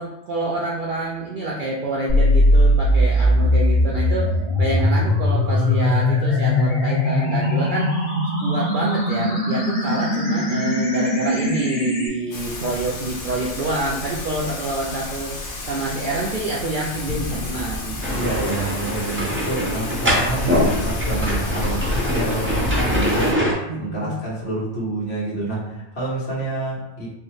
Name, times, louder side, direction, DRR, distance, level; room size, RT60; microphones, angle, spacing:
voice 1, 0.0-7.9 8.4-18.2 23.7-24.2, right 2 dB, 60° right, -4 dB, 0.5 m, -27 dB
sound 1, 2.1-12.1, left 1 dB, 30° left, 1.5 m, -19 dB
Thunder / Rain, 12.3-23.3, left 1 dB, 75° left, 1.2 m, -29 dB
sound 2, 18.0-23.5, equal, 15° right, 0.5 m, -24 dB
voice 2, 18.1-27.1, right 2 dB, 60° left, -7 dB, 1.5 m, -28 dB
4.5 x 2.2 x 3.1 m, 0.94 s
omnidirectional pair, 1.3 m